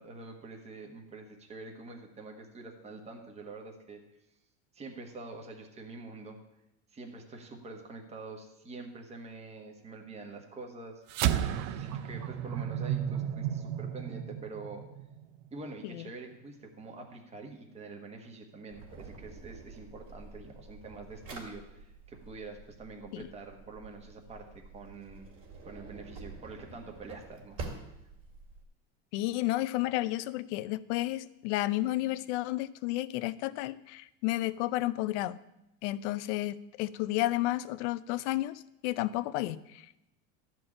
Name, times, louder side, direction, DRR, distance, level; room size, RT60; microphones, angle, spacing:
voice 1, 0.0-4.0 4.7-6.4 6.9-11.0 11.5-14.8 15.5-25.3 25.6-27.6, right 3 dB, 20° right, 3 dB, 1.3 m, -46 dB
sound 1, 11.1-15.7, right 10 dB, 55° right, 0.6 m, -33 dB
Drawer open or close, 18.7-28.6, right 3 dB, 40° right, 2.3 m, -47 dB
voice 2, 29.1-35.4 35.8-38.5 38.8-39.8, left 16 dB, 75° left, 16 dB, 0.6 m, -32 dB
13.0 x 4.6 x 8.7 m, 0.88 s
cardioid pair, 155°, 35 cm